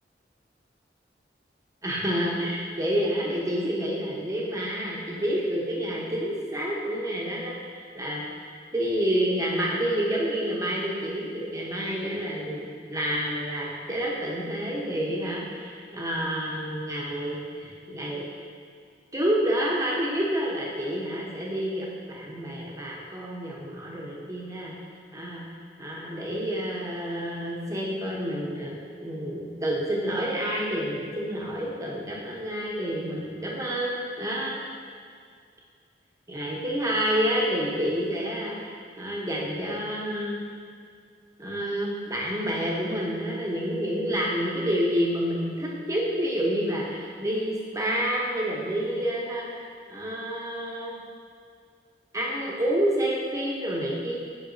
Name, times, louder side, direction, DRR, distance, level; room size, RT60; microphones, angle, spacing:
voice 1, 1.8-18.3 19.1-24.7 25.1-25.4 25.8-34.6 36.3-40.4 41.4-51.0 52.1-54.2, equal, 20° right, -4 dB, 1.0 m, -29 dB
7.8 x 5.4 x 2.7 m, 2.1 s
head